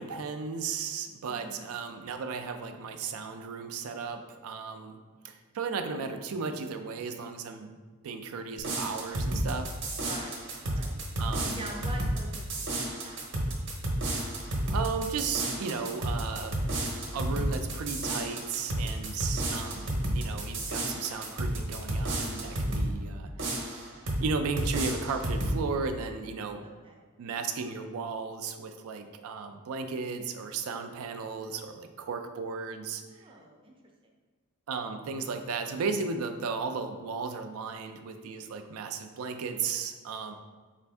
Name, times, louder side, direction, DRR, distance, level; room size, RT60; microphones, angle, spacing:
voice 1, 0.0-5.0 5.2-7.7 8.0-9.7 11.2-11.8 14.7-16.6 17.1-23.9 24.2-26.6 27.2-33.0 34.7-40.3, right 5 dB, 85° right, 7 dB, 0.4 m, -35 dB
voice 2, 1.3-1.7 10.0-10.4 10.7-11.0 11.5-13.5 26.6-27.0 33.2-33.7, right 2 dB, 25° right, 0 dB, 0.5 m, -45 dB
sound 1, 8.6-22.9 23.4-24.3 24.6-25.6, right 1 dB, 60° right, 0.7 m, -31 dB
4.2 x 2.5 x 3.4 m, 1.4 s
head